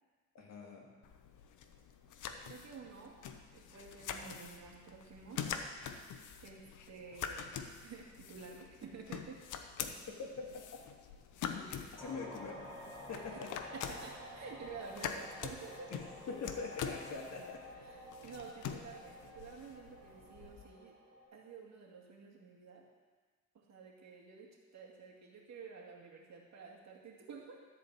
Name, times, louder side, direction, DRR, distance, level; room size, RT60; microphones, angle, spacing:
voice 1, 0.3-0.9 10.2-10.5 11.5-11.7 11.9-12.6 13.1-13.5 16.3-17.6 18.2-18.3, left 4 dB, 60° left, 0 dB, 2.2 m, -43 dB
sound 1, 1.0-20.6, left 7 dB, 80° left, 0.9 m, -45 dB
voice 2, 2.4-3.2 3.5-5.5 6.4-9.4 11.8-11.9 13.1-13.5 13.7-15.9 17.7-21.0 21.3-22.9 23.5-27.6, right 5 dB, 65° right, 0 dB, 2.2 m, -51 dB
sound 2, 12.0-21.2, equal, 15° left, 3.3 m, -51 dB
13.5 x 4.6 x 8.1 m, 1.4 s
cardioid pair, 90°, 30 cm